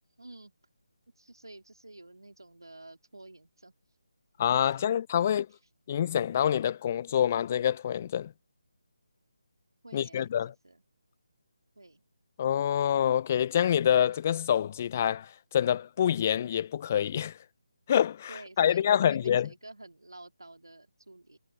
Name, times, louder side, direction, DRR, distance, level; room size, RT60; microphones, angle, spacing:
voice 1, 0.2-0.5 1.2-3.7 4.7-4.8 5.2-5.6 9.8-10.3 10.6-10.8 11.8-12.0 18.3-21.4, right 2 dB, 85° right, 2.9 m, -50 dB
voice 2, 4.4-5.5 5.9-8.3 9.9-10.5 12.4-17.4 17.9-19.5, left 9 dB, 30° left, 0.8 m, -26 dB
figure-of-eight pair, 155°, 2 cm